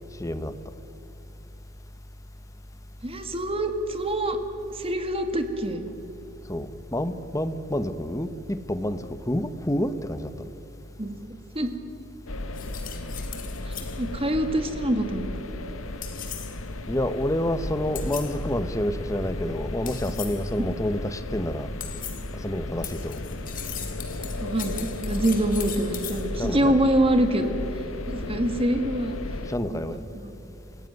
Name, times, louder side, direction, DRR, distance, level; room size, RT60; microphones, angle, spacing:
voice 1, 0.2-0.5 6.5-10.5 16.9-21.7 22.4-23.2 26.4-26.8 29.5-30.0, left 1 dB, 15° left, 11 dB, 1.0 m, -28 dB
voice 2, 3.0-4.4 4.7-5.8 11.0-11.1 11.6-11.7 13.6-15.3 20.1-20.2 24.4-27.5 28.1-29.2 29.7-30.0, right 1 dB, 30° right, 7 dB, 1.9 m, -25 dB
sound 1, 12.3-29.6, left 2 dB, 80° left, 1.2 m, -35 dB
sound 2, 12.5-14.0 16.0-16.6 17.9-18.4 19.9-20.5 21.8-22.3 22.8-26.3, left 9 dB, 45° left, 2.6 m, -39 dB
27.5 x 16.0 x 9.4 m, 3.0 s
head